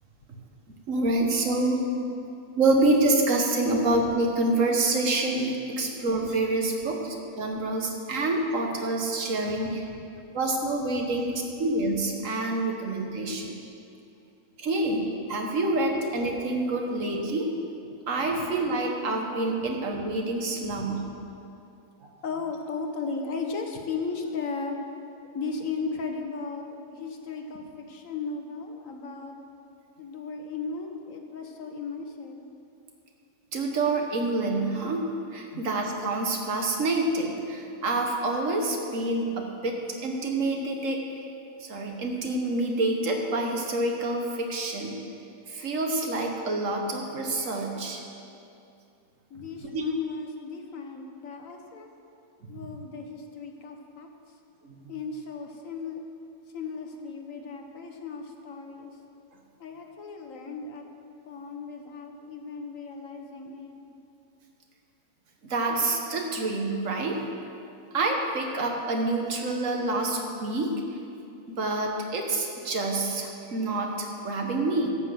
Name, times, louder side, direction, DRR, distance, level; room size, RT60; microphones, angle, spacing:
voice 1, 0.9-1.8 2.6-9.9 10.3-11.3 11.6-13.6 14.6-15.0 15.3-17.5 18.1-21.0 33.5-35.0 35.3-39.8 40.0-41.3 41.6-45.0 45.5-48.0 49.7-49.8 54.7-54.9 65.4-67.2 67.9-70.7 71.6-74.9, right 2 dB, 65° right, 2 dB, 1.5 m, -27 dB
voice 2, 9.9-10.3 17.8-17.9 20.8-20.9 21.8-21.9 22.2-24.8 25.2-29.4 30.0-32.4 35.5-35.7 49.3-51.9 52.5-54.1 54.9-56.0 56.5-58.9 59.6-60.8 61.3-63.8, left 4 dB, 70° left, 3 dB, 1.4 m, -36 dB
11.5 x 5.9 x 7.7 m, 2.6 s
omnidirectional pair, 1.4 m